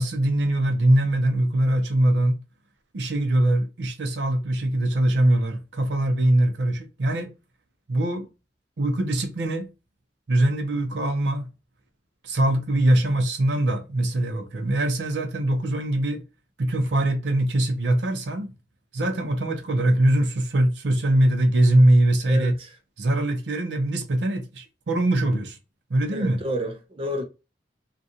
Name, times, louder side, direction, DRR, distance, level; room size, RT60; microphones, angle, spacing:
voice 1, 0.0-2.4 2.9-7.3 7.9-8.3 8.8-9.7 10.3-11.5 12.2-16.2 16.6-18.5 18.9-22.5 23.0-25.6 25.9-26.4, right 1 dB, 70° right, 0.6 m, -22 dB
voice 2, 22.3-22.7 26.1-27.3, equal, 30° right, 0.4 m, -30 dB
2.5 x 2.3 x 2.7 m
head